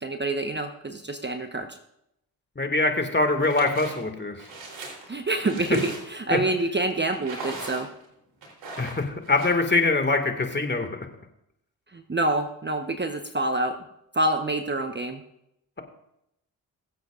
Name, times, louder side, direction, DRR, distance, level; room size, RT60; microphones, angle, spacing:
voice 1, 0.0-1.7 5.1-7.9 11.9-13.7 14.1-15.2, right 2 dB, 25° right, 6 dB, 1.0 m, -27 dB
voice 2, 2.6-4.3 5.7-5.8 6.3-6.4 8.8-10.9, left 3 dB, 25° left, 5 dB, 2.1 m, -23 dB
sound 1, 3.4-3.9 4.4-6.3 7.1-8.0 8.4-9.5, right 2 dB, 70° right, 3.6 m, -38 dB
22.5 x 7.8 x 2.5 m, 0.79 s
supercardioid pair, 50°, 44 cm